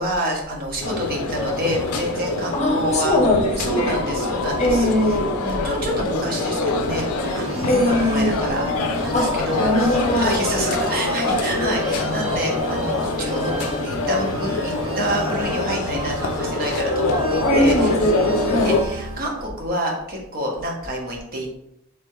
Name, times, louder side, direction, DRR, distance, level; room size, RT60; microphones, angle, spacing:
voice 1, 0.0-3.2 3.6-5.2 5.4-7.0 7.3-8.6 8.9-17.9 18.6-21.6, equal, 45° right, -1 dB, 0.9 m, -28 dB
sound 1, 0.8-18.8, left 2 dB, 85° left, 0.5 m, -25 dB
voice 2, 2.5-4.0 4.6-5.4 7.6-8.3 9.1-10.4 17.4-18.8, left 1 dB, 30° left, 0 dB, 0.8 m, -20 dB
sound 2, 7.2-19.5, right 1 dB, 70° right, 1.2 m, -34 dB
3.4 x 3.3 x 3.1 m, 0.80 s
head